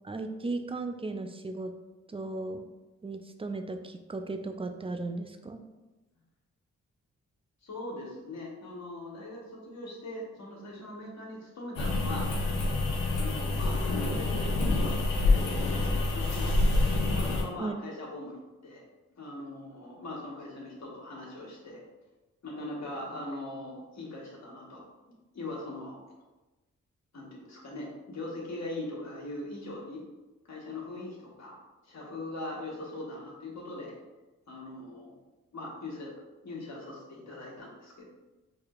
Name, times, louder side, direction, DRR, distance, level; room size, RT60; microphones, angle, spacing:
voice 1, 0.0-1.7 2.1-2.7 3.0-5.6 17.6-17.7, right 3 dB, 20° right, 6 dB, 0.4 m, -36 dB
voice 2, 7.6-12.3 13.1-18.8 19.2-21.8 22.4-24.9 25.3-26.0 27.1-30.0 30.5-31.6 31.9-33.9 34.5-35.2 35.5-36.1 36.4-38.0, left 2 dB, 55° left, -3 dB, 1.4 m, -41 dB
sound 1, 11.7-17.4, left 2 dB, 85° left, 0.7 m, -27 dB
4.8 x 2.8 x 2.5 m, 1.1 s
supercardioid pair, 45°, 32 cm